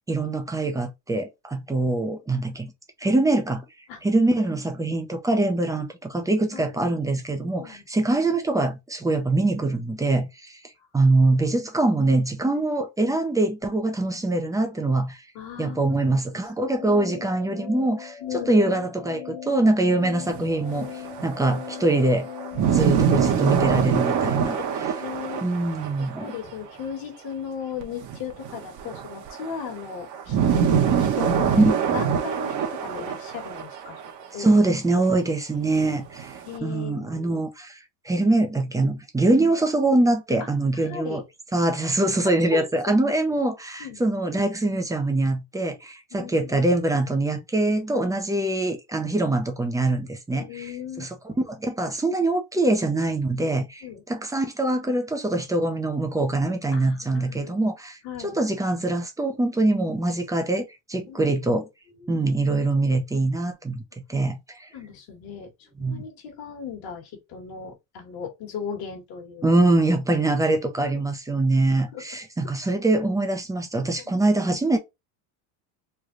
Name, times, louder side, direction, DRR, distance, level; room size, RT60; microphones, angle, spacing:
voice 1, 0.1-2.7 3.0-3.6 4.0-10.6 10.9-15.2 15.6-18.2 18.5-20.9 21.2-22.3 22.7-24.6 25.4-26.3 31.6-31.8 34.4-37.8 38.1-41.2 41.5-50.7 51.0-58.0 58.2-61.7 62.1-63.8 64.1-64.7 65.8-66.0 69.4-74.8, right 2 dB, 10° right, 0.4 m, -23 dB
voice 2, 15.3-16.0 16.6-16.9 18.2-18.6 23.0-23.6 24.5-25.5 26.0-30.4 30.7-34.5 36.4-37.4 40.4-40.5 40.7-41.2 42.2-43.0 43.8-44.0 46.1-46.5 50.3-51.0 53.8-54.0 56.7-57.7 58.0-58.4 61.0-61.3 62.0-62.1 64.7-69.4 71.9-72.0 74.0-74.1, left 7 dB, 45° left, 1.4 m, -37 dB
sound 1, 16.7-22.9, left 9 dB, 70° left, 1.0 m, -39 dB
sound 2, 20.2-26.5 27.8-34.3 34.5-34.6 35.7-36.6, right 7 dB, 40° right, 0.8 m, -25 dB
3.3 x 2.2 x 3.6 m
supercardioid pair, 125°, 48 cm